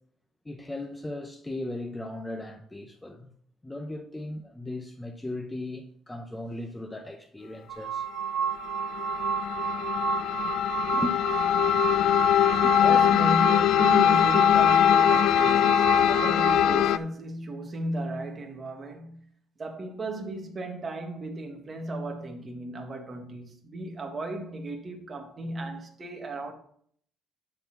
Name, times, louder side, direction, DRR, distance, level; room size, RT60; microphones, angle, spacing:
voice 1, 0.4-3.3 3.6-8.1 10.9-11.2 12.6-12.7, left 1 dB, 10° left, 0.8 m, -37 dB
sound 1, 7.7-16.5, right 8 dB, 80° right, 0.8 m, -31 dB
sound 2, 8.4-17.0, left 10 dB, 70° left, 0.4 m, -22 dB
voice 2, 12.8-19.3 19.6-26.5, right 2 dB, 30° right, 1.7 m, -35 dB
10.5 x 4.1 x 5.9 m
cardioid pair, 130°, 0 cm